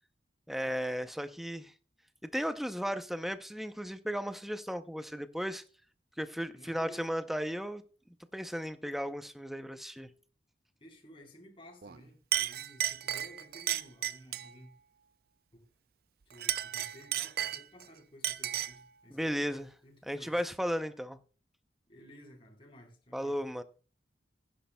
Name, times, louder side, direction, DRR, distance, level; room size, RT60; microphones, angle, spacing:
voice 1, 0.5-1.7 2.2-5.6 6.2-7.8 8.3-10.1 19.1-19.7 20.1-21.2 23.1-23.6, equal, ahead, 0.6 m, -35 dB
voice 2, 6.5-7.1 10.8-14.7 15.5-15.7 16.3-20.4 21.9-23.4, equal, 30° left, 3.9 m, -55 dB
Chink clink, 11.8-12.0 12.3-14.5 16.3-17.8 18.2-18.8, right 11 dB, 55° right, 0.4 m, -34 dB
16.5 x 10.5 x 2.2 m
head